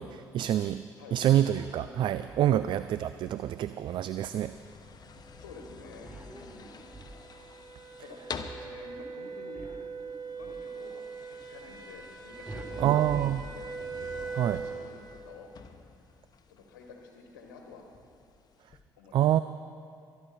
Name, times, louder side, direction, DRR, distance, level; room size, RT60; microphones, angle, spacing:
voice 1, 0.0-0.8 1.1-4.6 12.8-13.4 14.4-14.6 19.1-19.4, right 11 dB, 55° right, 13 dB, 0.3 m, -26 dB
sound 1, 1.3-2.9 6.0-7.6 9.5-10.8 12.5-14.2, right 2 dB, 15° right, 1.0 m, -47 dB
sound 2, 1.8-18.8, left 5 dB, 40° left, 1.1 m, -49 dB
sound 3, 5.0-14.9, right 5 dB, 40° right, 1.5 m, -42 dB
voice 2, 5.4-6.8 8.0-8.2 8.6-9.7 10.3-15.5 16.5-17.8 19.0-19.3, left 4 dB, 90° left, 2 dB, 1.3 m, -50 dB
23.0 x 10.5 x 4.2 m, 2.5 s
hypercardioid pair, 55°, 10 cm